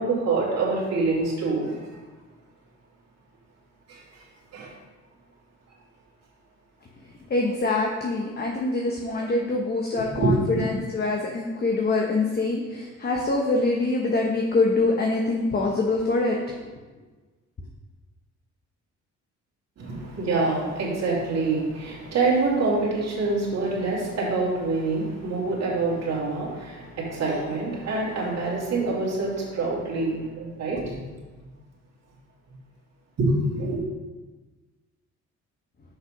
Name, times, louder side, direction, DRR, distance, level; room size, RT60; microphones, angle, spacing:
voice 1, 0.0-1.8 3.9-4.0 4.5-4.7 9.9-10.6 19.8-31.0 33.2-33.8, right 3 dB, 60° right, -5 dB, 2.6 m, -26 dB
voice 2, 7.3-16.6, left 3 dB, 30° left, 0 dB, 1.0 m, -24 dB
6.6 x 5.7 x 5.2 m, 1.3 s
cardioid pair, 90°, 30 cm